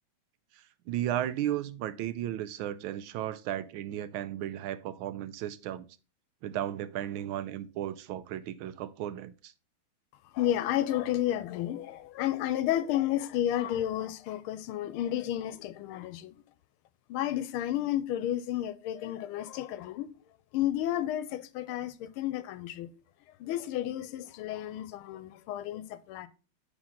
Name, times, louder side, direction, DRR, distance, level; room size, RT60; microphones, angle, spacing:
voice 1, 0.5-5.9 6.4-9.5, right 12 dB, 80° right, 1.4 m, -35 dB
voice 2, 10.3-16.4 17.1-20.1 20.5-22.9 23.4-26.3, left 12 dB, 85° left, 1.5 m, -32 dB
9.8 x 3.8 x 3.7 m
omnidirectional pair, 2.3 m